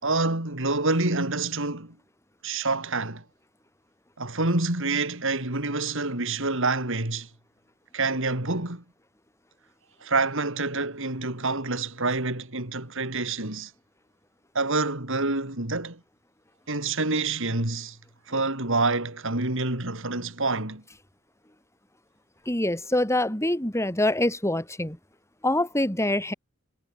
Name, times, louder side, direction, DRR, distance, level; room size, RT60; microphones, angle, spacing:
voice 1, 0.0-1.9 2.4-3.2 4.2-7.3 7.9-8.8 10.0-13.7 14.5-16.0 16.7-18.0 18.3-20.8, right 3 dB, 65° right, 4.9 m, -27 dB
voice 2, 22.5-25.0 25.4-26.3, left 1 dB, 15° left, 4.1 m, -25 dB
head